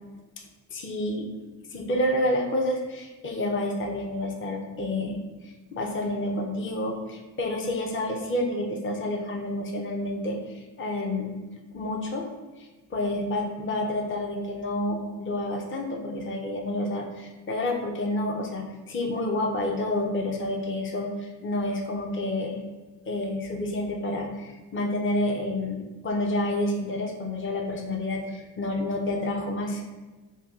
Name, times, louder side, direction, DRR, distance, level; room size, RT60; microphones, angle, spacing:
voice 1, 0.7-1.3 1.7-11.4 11.7-12.3 12.6-22.6 23.1-29.8, left 1 dB, 30° left, 1 dB, 0.6 m, -29 dB
2.7 x 2.3 x 3.5 m, 1.2 s
cardioid pair, 45°, 44 cm